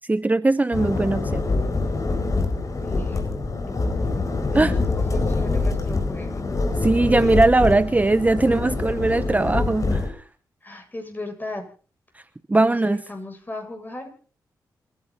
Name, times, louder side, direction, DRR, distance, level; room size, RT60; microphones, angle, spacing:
voice 1, 0.1-1.4 4.5-4.7 6.8-10.1 12.5-13.0, right 2 dB, 20° right, 14 dB, 0.8 m, -20 dB
sound 1, 0.7-10.1, left 3 dB, 45° left, 4.7 m, -25 dB
voice 2, 2.8-3.3 4.5-6.4 10.6-11.6 12.6-14.1, left 2 dB, 25° left, 3 dB, 7.9 m, -36 dB
28.0 x 11.0 x 4.3 m, 0.40 s
cardioid pair, 55°, 8 cm